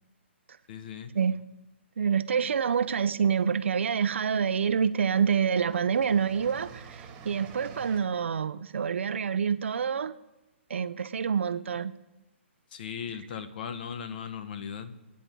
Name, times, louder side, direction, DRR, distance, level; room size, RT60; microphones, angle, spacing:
voice 1, 0.7-1.1 12.7-15.0, left 7 dB, 50° left, 1.3 m, -38 dB
voice 2, 2.0-10.1 10.7-11.9, right 7 dB, 75° right, 0.9 m, -27 dB
sound 1, 2.6-3.5 4.4-4.5 4.8-8.0, right 6 dB, 20° right, 2.3 m, -48 dB
28.5 x 9.8 x 3.9 m
hypercardioid pair, 155°, 7 cm